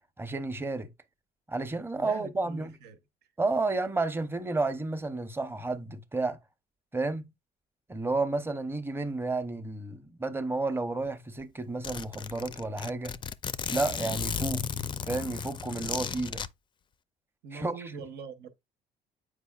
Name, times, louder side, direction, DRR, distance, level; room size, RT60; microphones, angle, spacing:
voice 1, 0.2-0.9 1.5-2.7 3.4-6.4 6.9-7.3 7.9-13.2 13.7-14.6 15.1-16.4 17.5-17.8, right 3 dB, 15° right, 0.7 m, -31 dB
voice 2, 2.0-3.0 17.4-18.5, right 6 dB, 85° right, 1.1 m, -43 dB
Zipper (clothing), 11.1-11.2 11.4-11.5 11.8-16.5, left 7 dB, 30° left, 0.4 m, -35 dB
8.0 x 4.9 x 2.4 m
cardioid pair, 110°, 17 cm